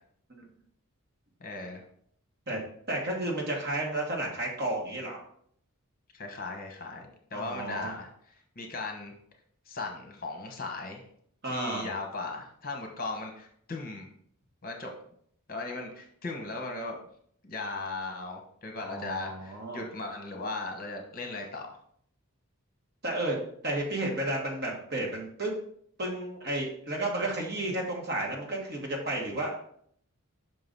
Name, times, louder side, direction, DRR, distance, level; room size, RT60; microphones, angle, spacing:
voice 1, 1.4-1.8 6.1-9.1 9.7-11.0 11.4-14.1 14.6-14.9 15.5-17.0 17.4-21.8, left 3 dB, 40° left, 3 dB, 1.1 m, -37 dB
voice 2, 2.9-5.2 7.3-7.9 11.4-11.9 18.8-19.8 23.0-23.4 23.6-25.5 26.0-29.6, right 1 dB, 45° right, -1 dB, 1.5 m, -32 dB
5.9 x 3.9 x 5.3 m, 0.65 s
head